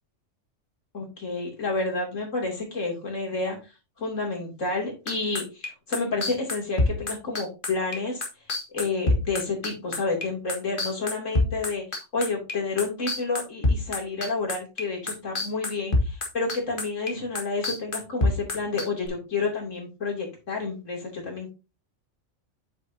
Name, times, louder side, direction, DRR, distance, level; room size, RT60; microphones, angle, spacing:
voice 1, 0.9-3.6 4.0-8.2 8.7-11.8 12.1-21.5, left 3 dB, 75° left, -1 dB, 3.3 m, -30 dB
sound 1, 5.1-14.8 15.1-19.1, left 2 dB, 45° left, 1.9 m, -25 dB
8.6 x 6.8 x 2.8 m, 0.29 s
omnidirectional pair, 1.3 m